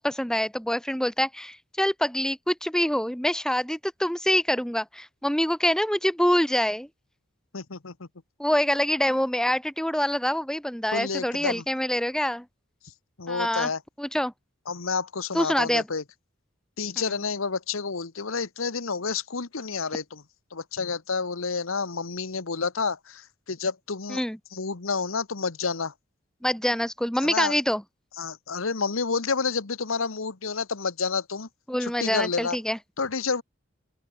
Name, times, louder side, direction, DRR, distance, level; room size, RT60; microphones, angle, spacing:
voice 1, 0.0-6.9 8.4-12.4 13.3-13.7 14.0-14.3 15.3-15.8 24.1-24.4 26.4-27.8 31.7-32.8, equal, 5° left, 1.0 m, -25 dB
voice 2, 7.5-8.1 10.9-11.6 13.2-13.8 14.7-16.0 16.8-20.2 20.5-24.2 24.5-25.9 27.2-27.6 28.2-31.5 31.8-32.6 33.0-33.4, left 4 dB, 85° left, 1.3 m, -29 dB
open air
head